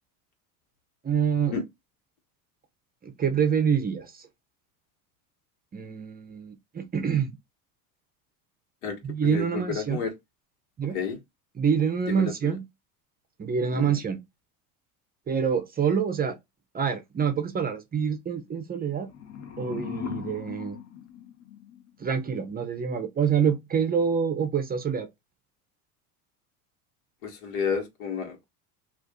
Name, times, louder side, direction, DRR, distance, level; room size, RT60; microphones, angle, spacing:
voice 1, 1.0-1.5 3.0-4.1 5.7-7.3 9.0-10.0 10.8-11.0 11.6-12.6 13.4-14.2 15.3-16.4 16.7-19.1 19.6-20.8 22.0-25.1, right 7 dB, 20° right, 0.6 m, -26 dB
voice 2, 8.8-10.1 10.9-11.2 12.1-12.5 13.7-14.0 27.2-28.5, left 6 dB, 75° left, 1.4 m, -31 dB
sound 1, 18.8-21.9, left 8 dB, 35° left, 0.8 m, -39 dB
2.5 x 2.5 x 3.5 m
supercardioid pair, 100°, 44 cm